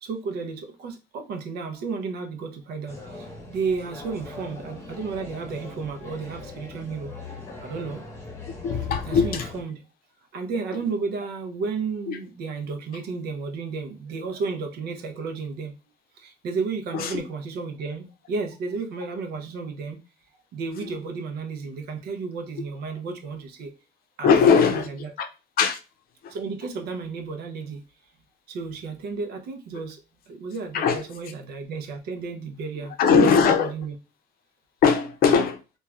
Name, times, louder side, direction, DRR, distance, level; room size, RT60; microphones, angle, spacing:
voice 1, 0.0-7.1 7.6-8.0 9.1-9.8 10.3-15.7 16.2-20.0 20.5-23.7 24.2-25.1 26.3-27.8 28.5-30.0 30.3-33.9, right 4 dB, 70° right, 0.6 m, -32 dB
sound 1, 2.9-9.6, left 3 dB, 15° left, 0.9 m, -41 dB
voice 2, 8.6-9.5 12.1-12.2 16.9-17.2 24.2-24.9 25.2-25.3 25.6-25.8 26.2-26.3 30.7-31.0 33.0-33.7 34.8-35.6, left 6 dB, 60° left, 0.5 m, -20 dB
3.0 x 2.3 x 2.4 m
cardioid pair, 110°, 17 cm